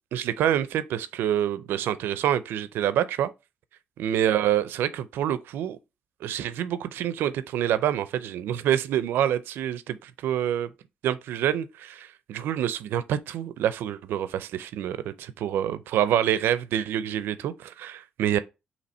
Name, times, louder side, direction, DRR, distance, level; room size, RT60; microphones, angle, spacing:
voice 1, 0.1-3.3 4.0-5.8 6.2-10.7 11.0-18.4, right 10 dB, 85° right, 0.4 m, -27 dB
4.2 x 2.9 x 4.1 m
cardioid pair, 90°, 4 cm